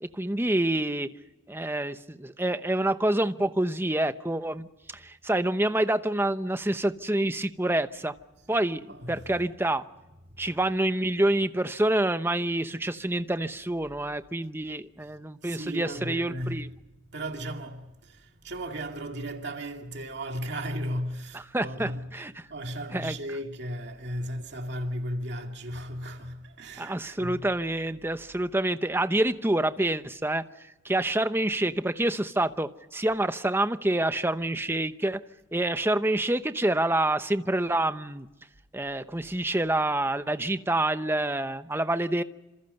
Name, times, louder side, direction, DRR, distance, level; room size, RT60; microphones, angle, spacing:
voice 1, 0.0-1.1 1.5-4.7 4.9-8.1 8.5-8.8 9.1-9.8 10.4-16.7 21.3-22.3 22.9-23.1 26.8-30.4 30.8-35.2 35.5-38.3 38.7-42.2, right 1 dB, 10° right, 0.8 m, -27 dB
voice 2, 8.4-9.5 10.4-10.7 15.0-15.1 15.4-16.8 17.1-27.5, equal, 60° right, 2.3 m, -36 dB
28.0 x 27.0 x 5.4 m
head